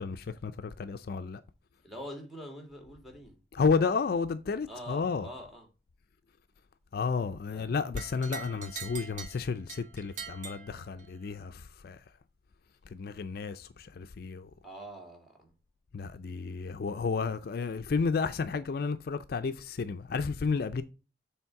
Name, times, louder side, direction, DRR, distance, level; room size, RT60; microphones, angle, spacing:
voice 1, 0.0-1.4 3.5-5.3 6.9-12.0 12.9-14.5 15.9-20.8, left 5 dB, 55° left, 0.4 m, -32 dB
voice 2, 1.8-3.4 4.7-5.7 7.5-7.8 14.6-15.5, equal, ahead, 1.9 m, -45 dB
sound 1, 8.0-11.3, right 7 dB, 45° right, 0.8 m, -44 dB
7.1 x 3.5 x 4.5 m
head